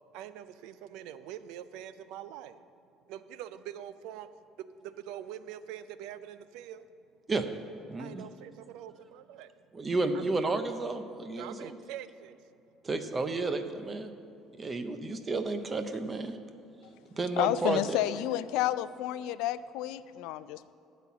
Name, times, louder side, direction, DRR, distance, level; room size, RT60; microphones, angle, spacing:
voice 1, 0.1-2.6 3.1-4.3 4.8-6.9 8.0-9.5 10.1-10.2 11.4-12.4, right 11 dB, 80° right, 13 dB, 0.4 m, -44 dB
voice 2, 7.9-8.2 9.7-11.8 12.8-14.1 14.6-16.4 17.2-18.0, right 3 dB, 15° right, 8 dB, 0.5 m, -32 dB
voice 3, 17.4-20.7, left 14 dB, 80° left, 15 dB, 0.3 m, -30 dB
12.5 x 4.2 x 8.3 m, 2.6 s
cardioid pair, 170°, 0 cm